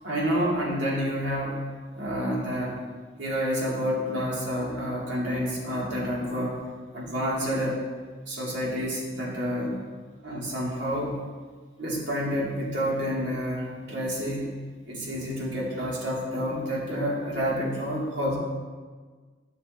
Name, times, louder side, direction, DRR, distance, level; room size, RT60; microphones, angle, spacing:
voice 1, 0.0-1.6 2.0-2.7 3.2-6.6 6.9-7.8 8.2-9.7 10.2-11.2 11.8-14.5 14.9-18.4, equal, 70° right, -5 dB, 2.2 m, -29 dB
13.0 x 6.4 x 2.7 m, 1.5 s
head